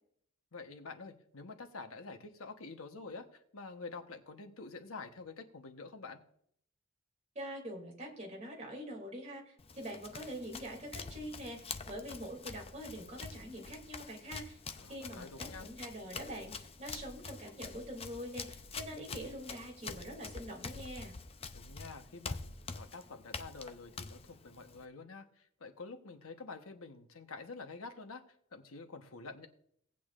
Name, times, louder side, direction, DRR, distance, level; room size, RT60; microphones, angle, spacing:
voice 1, 0.5-6.2 14.8-15.7 18.9-19.2 21.5-28.2 28.5-29.5, left 3 dB, 90° left, 6 dB, 1.1 m, -48 dB
voice 2, 7.3-14.6 14.9-21.1, equal, 35° right, 0 dB, 2.7 m, -44 dB
Run, 9.6-24.9, left 4 dB, 30° left, 0.5 m, -46 dB
17.0 x 8.5 x 2.5 m, 0.66 s
head